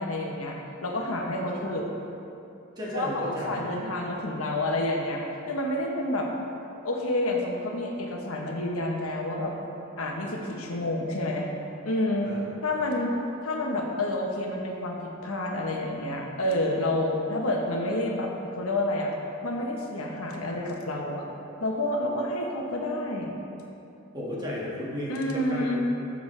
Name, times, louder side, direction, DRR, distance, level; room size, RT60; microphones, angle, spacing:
voice 1, 0.0-1.9 2.9-6.3 6.8-9.5 10.0-11.5 11.8-12.3 12.6-19.1 19.4-21.2 21.6-23.3 25.1-25.8, left 1 dB, 75° left, 0 dB, 1.0 m, -29 dB
voice 2, 2.8-3.6 12.2-12.5 24.1-25.8, equal, 20° right, -6 dB, 1.7 m, -34 dB
12.0 x 7.0 x 3.3 m, 2.8 s
head